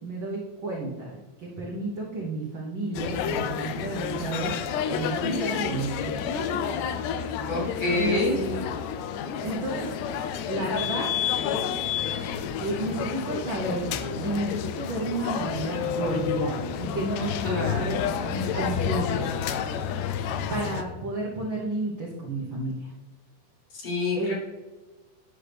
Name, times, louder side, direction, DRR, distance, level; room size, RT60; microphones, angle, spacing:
voice 1, 0.0-4.5 4.9-6.6 7.9-8.6 9.4-9.9 10.5-11.1 12.6-13.9 14.1-19.8 20.5-22.9 24.1-24.3, right 2 dB, 70° right, -3 dB, 1.1 m, -31 dB
sound 1, 2.9-20.8, left 8 dB, 85° left, 1.6 m, -30 dB
voice 2, 7.5-8.4 17.4-17.9 23.7-24.3, left 3 dB, 60° left, -3 dB, 2.5 m, -27 dB
9.5 x 5.9 x 3.4 m, 1.2 s
omnidirectional pair, 3.7 m